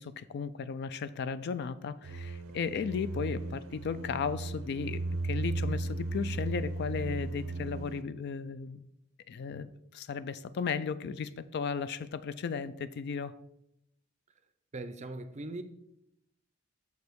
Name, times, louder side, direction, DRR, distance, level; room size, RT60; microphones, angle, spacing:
voice 1, 0.0-8.8 9.3-13.3, left 6 dB, 50° left, 0.3 m, -35 dB
sound 1, 2.0-8.0, right 2 dB, 85° right, 0.4 m, -36 dB
voice 2, 14.7-15.6, right 2 dB, 35° right, 0.5 m, -39 dB
6.7 x 5.2 x 4.6 m
head